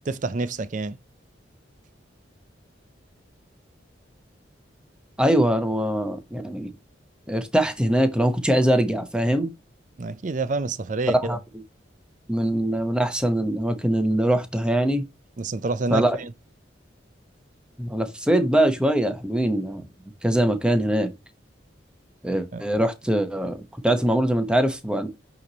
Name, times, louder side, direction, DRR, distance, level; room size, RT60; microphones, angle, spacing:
voice 1, 0.1-1.0 10.0-11.4 15.4-16.3 22.5-22.6, right 3 dB, 45° right, 0.5 m, -28 dB
voice 2, 5.2-6.7 7.3-9.5 11.2-11.4 12.3-15.0 15.9-16.2 17.8-19.8 20.2-21.1 22.2-23.6 23.8-25.1, right 1 dB, 5° right, 0.9 m, -22 dB
8.5 x 3.0 x 4.0 m
head